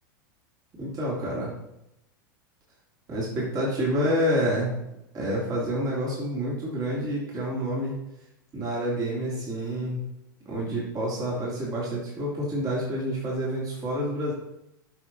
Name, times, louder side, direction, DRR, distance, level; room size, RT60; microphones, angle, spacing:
voice 1, 0.8-1.5 3.1-4.7 5.1-8.0 8.5-10.0 10.4-14.3, equal, 35° right, -5 dB, 3.4 m, -28 dB
9.7 x 6.4 x 4.1 m, 0.85 s
hypercardioid pair, 95°, 11 cm